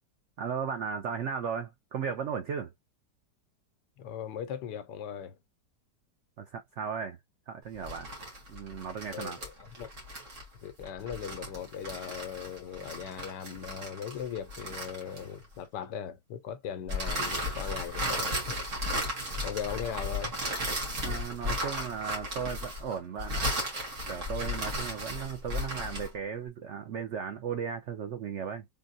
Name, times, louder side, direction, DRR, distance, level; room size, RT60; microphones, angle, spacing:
voice 1, 0.4-2.7 6.4-7.2 7.5-8.1 8.5-9.4 21.0-23.7 24.1-28.7, right 7 dB, 70° right, 0.7 m, -36 dB
voice 2, 4.0-5.4 9.1-9.9 10.6-18.6 19.4-20.4, left 8 dB, 80° left, 1.3 m, -39 dB
sound 1, 7.7-15.6 16.9-26.2, equal, 45° right, 2.0 m, -35 dB
3.9 x 3.5 x 2.5 m
omnidirectional pair, 1.9 m